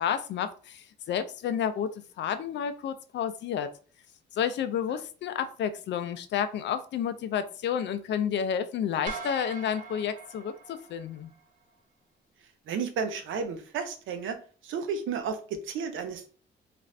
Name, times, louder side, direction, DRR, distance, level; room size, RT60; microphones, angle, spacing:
voice 1, 0.0-1.9 2.2-3.7 4.3-11.3, left 8 dB, 65° left, 0.4 m, -30 dB
sound 1, 9.1-11.4, right 4 dB, 40° right, 0.7 m, -41 dB
voice 2, 12.7-14.4 14.6-16.3, right 6 dB, 80° right, 0.6 m, -32 dB
2.5 x 2.4 x 3.2 m
cardioid pair, 90°, 20 cm